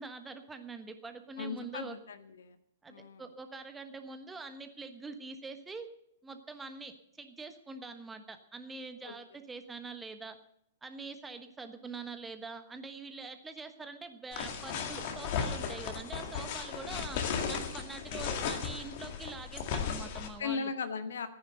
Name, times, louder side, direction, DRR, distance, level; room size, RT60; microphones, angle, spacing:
voice 1, 0.0-2.0 2.8-5.9 6.2-10.4 10.8-20.7, right 4 dB, 10° right, 8 dB, 1.2 m, -44 dB
voice 2, 1.4-2.6 2.9-3.2 9.0-9.1 20.4-21.3, left 5 dB, 65° left, 11 dB, 1.2 m, -37 dB
sound 1, 14.3-20.3, left 6 dB, 45° left, 2.0 m, -36 dB
14.5 x 10.0 x 6.5 m, 0.72 s
figure-of-eight pair, 110°, 0 cm